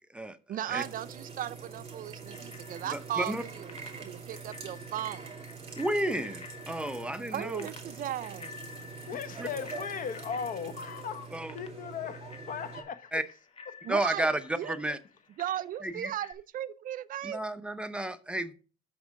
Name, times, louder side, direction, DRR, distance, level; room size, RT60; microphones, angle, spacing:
voice 1, 0.5-5.3 7.3-8.6 13.8-14.7 15.4-17.4, right 11 dB, 55° right, 0.5 m, -36 dB
faucet on and then off, 0.7-12.8, right 5 dB, 35° right, 2.9 m, -45 dB
Bicycle bell, 2.3-16.3, left 5 dB, 35° left, 1.4 m, -51 dB
voice 2, 2.9-3.4 5.8-7.7 9.4-9.5 11.3-11.5 13.1-13.2 13.9-15.0 15.8-16.1 17.2-18.5, right 1 dB, 5° right, 0.7 m, -32 dB
voice 3, 9.1-11.3 11.5-13.1, left 7 dB, 55° left, 1.0 m, -37 dB
6.1 x 6.0 x 6.3 m
cardioid pair, 110°, 17 cm